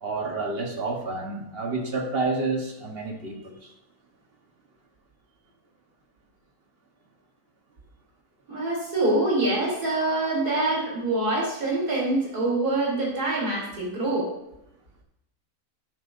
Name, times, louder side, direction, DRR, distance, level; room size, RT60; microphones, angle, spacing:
voice 1, 0.0-3.7, right 3 dB, 40° right, 2 dB, 1.4 m, -29 dB
voice 2, 8.5-14.3, right 2 dB, 85° right, -3 dB, 3.7 m, -25 dB
12.0 x 9.3 x 2.6 m, 0.84 s
omnidirectional pair, 1.6 m